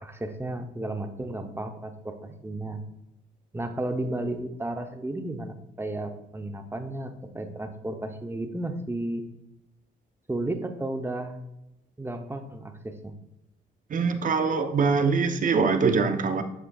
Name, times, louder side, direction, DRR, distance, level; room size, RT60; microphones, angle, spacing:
voice 1, 0.0-2.8 3.5-9.2 10.3-11.4 12.0-13.1, right 1 dB, 10° right, 7 dB, 0.7 m, -33 dB
voice 2, 13.9-16.4, right 5 dB, 40° right, 8 dB, 0.8 m, -23 dB
8.0 x 6.1 x 2.4 m, 0.90 s
cardioid pair, 90°, 20 cm